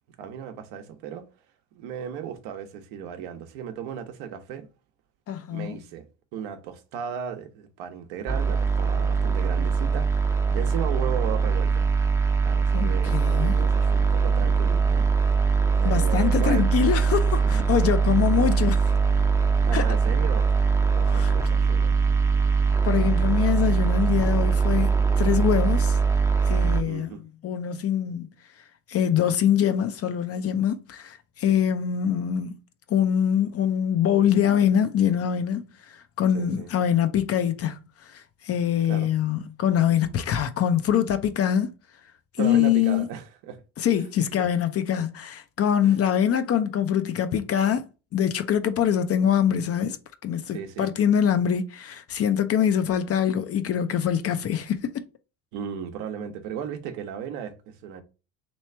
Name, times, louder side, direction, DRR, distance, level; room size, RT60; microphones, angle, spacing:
voice 1, 0.2-1.3 1.7-4.7 5.5-6.1 6.3-11.8 12.4-15.5 15.7-16.6 17.4-17.6 19.6-20.5 20.9-22.0 26.9-27.2 31.5-31.6 36.3-36.7 38.9-39.1 42.4-43.6 44.4-44.5 45.8-45.9 50.5-50.9 55.5-58.0, right 8 dB, 65° right, 1.0 m, -36 dB
voice 2, 5.3-5.8 12.7-13.6 15.8-18.9 19.7-20.0 21.0-21.3 22.8-26.0 26.5-27.1 27.4-28.3 28.9-32.5 32.9-41.7 42.4-43.1 43.8-50.0 50.2-54.9, left 9 dB, 35° left, 0.6 m, -24 dB
sound 1, 8.3-26.8, right 5 dB, 5° right, 0.7 m, -22 dB
3.2 x 3.1 x 4.3 m
hypercardioid pair, 75°, 40 cm